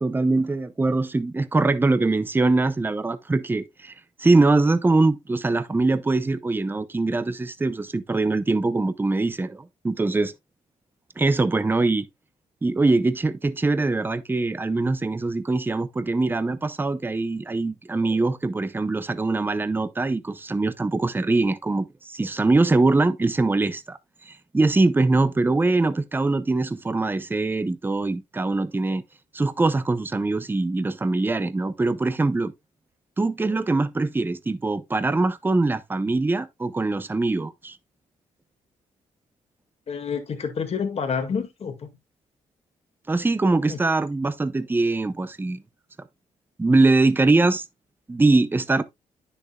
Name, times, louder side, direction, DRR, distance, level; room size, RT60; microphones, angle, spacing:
voice 1, 0.0-3.9 4.2-10.3 11.2-12.1 12.6-24.0 24.3-29.0 29.3-32.5 33.2-37.8 43.1-45.6 46.6-47.6 48.1-48.8, right 3 dB, 15° right, 0.6 m, -22 dB
voice 2, 39.9-42.0 43.7-43.8, left 6 dB, 50° left, 1.9 m, -28 dB
9.8 x 6.6 x 2.3 m
cardioid pair, 90°, 13 cm